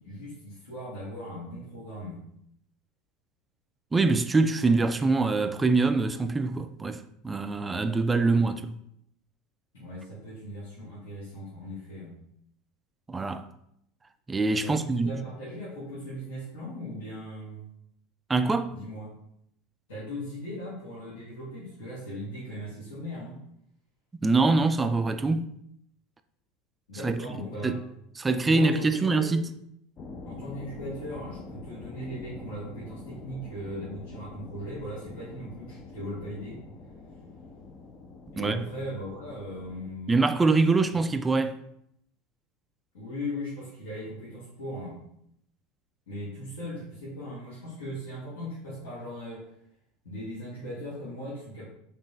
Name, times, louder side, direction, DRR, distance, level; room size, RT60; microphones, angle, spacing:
voice 1, 0.0-2.2 9.7-12.2 14.6-17.6 18.7-19.1 19.9-23.4 26.9-27.8 28.4-29.3 30.2-36.6 38.3-40.1 42.9-45.0 46.1-49.4 50.0-51.6, equal, 75° left, 1.6 m, -38 dB
voice 2, 3.9-8.7 13.1-13.5 14.3-15.1 18.3-18.8 24.2-25.5 27.0-27.2 27.6-27.8 28.2-29.5 38.4-38.6 40.1-41.6, right 3 dB, 15° right, 0.4 m, -24 dB
sound 1, 30.0-39.9, left 3 dB, 40° left, 0.6 m, -45 dB
4.2 x 3.4 x 3.1 m
figure-of-eight pair, 75°, 0 cm